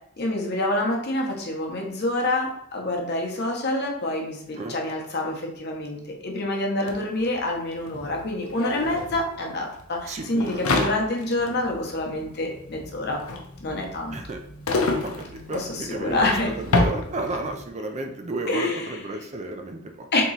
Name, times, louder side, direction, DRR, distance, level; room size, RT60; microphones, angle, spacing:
voice 1, 0.2-13.2 13.6-14.2 15.5-16.5 18.5-19.0 20.1-20.2, left 2 dB, 50° left, 1 dB, 0.9 m, -27 dB
sound 1, 6.9-7.0 7.2-17.6, left 2 dB, 85° left, 0.7 m, -29 dB
voice 2, 10.1-10.9 14.1-14.5 15.0-16.2 16.6-20.1, right 2 dB, 30° right, 4 dB, 0.4 m, -32 dB
3.7 x 3.0 x 4.0 m, 0.73 s
head